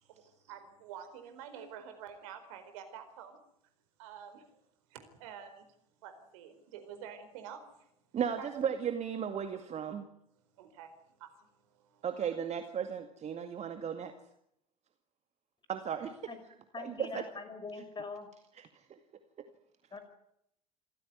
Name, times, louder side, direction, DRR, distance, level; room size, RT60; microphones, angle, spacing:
voice 1, 0.0-3.4 4.0-4.5 4.9-5.6 6.0-7.9 8.4-8.7 10.5-12.0, right 8 dB, 60° right, 8 dB, 4.5 m, -49 dB
voice 2, 8.1-10.1 12.0-14.1 15.7-16.1 16.8-17.2 18.9-19.0 19.4-19.5, right 8 dB, 35° right, 7 dB, 2.2 m, -35 dB
voice 3, 16.7-18.3 19.9-20.0, left 4 dB, 25° left, 9 dB, 5.8 m, -43 dB
26.5 x 15.5 x 9.6 m, 0.77 s
figure-of-eight pair, 65°, 20 cm